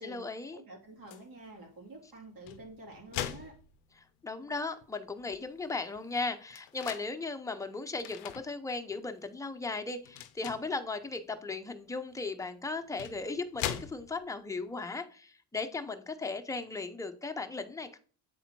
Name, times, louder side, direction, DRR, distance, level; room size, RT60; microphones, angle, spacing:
voice 1, 0.0-0.6 4.0-18.0, left 3 dB, 10° left, 6 dB, 0.7 m, -37 dB
voice 2, 0.5-3.5, right 1 dB, 55° right, -1 dB, 3.0 m, -49 dB
sound 1, 1.1-1.3 2.3-4.2 4.8-4.9 5.2-7.1 8.0-8.5 9.0-9.2 10.0-10.8 12.1-12.2 12.8-14.4, left 12 dB, 90° left, 0.6 m, -41 dB
8.4 x 4.0 x 3.0 m, 0.41 s
supercardioid pair, 70°, 42 cm